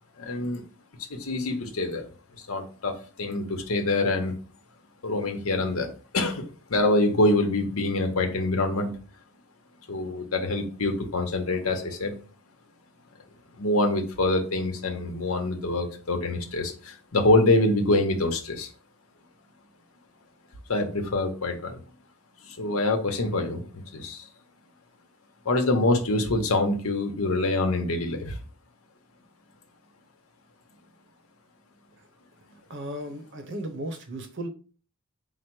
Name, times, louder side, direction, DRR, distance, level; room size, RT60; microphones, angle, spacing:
voice 1, 0.2-0.6 1.1-2.1 2.5-4.3 5.0-6.4 6.7-9.0 9.9-12.1 13.6-18.7 20.7-21.8 22.4-24.3 25.4-28.4, left 2 dB, 70° left, 4 dB, 0.9 m, -25 dB
voice 2, 32.7-34.5, right 1 dB, 60° right, 7 dB, 0.8 m, -35 dB
4.8 x 2.0 x 4.5 m, 0.37 s
head